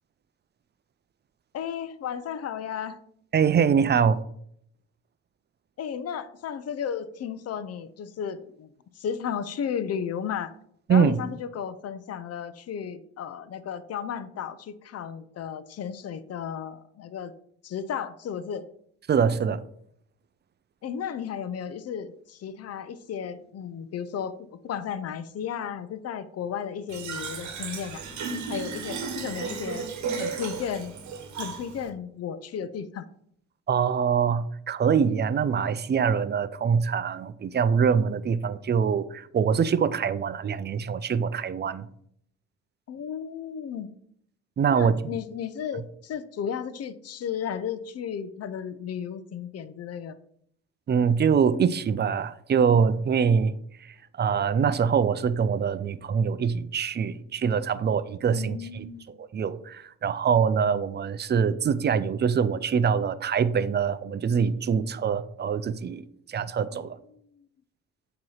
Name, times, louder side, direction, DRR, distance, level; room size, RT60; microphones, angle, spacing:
voice 1, 1.5-3.0 5.8-10.5 10.9-17.3 17.6-18.6 20.8-28.0 28.5-29.9 30.2-30.9 31.4-33.1 42.9-43.9 44.7-50.2 58.3-59.2 66.7-67.4, left 8 dB, 55° left, 13 dB, 0.6 m, -34 dB
voice 2, 3.3-4.2 10.9-11.2 19.1-19.6 33.7-41.9 44.6-44.9 50.9-53.6 54.2-58.8 59.3-67.0, right 6 dB, 35° right, 15 dB, 0.5 m, -24 dB
Fill (with liquid), 26.9-31.9, right 5 dB, 70° right, 1.1 m, -34 dB
7.6 x 3.0 x 5.6 m, 0.68 s
cardioid pair, 90°, 30 cm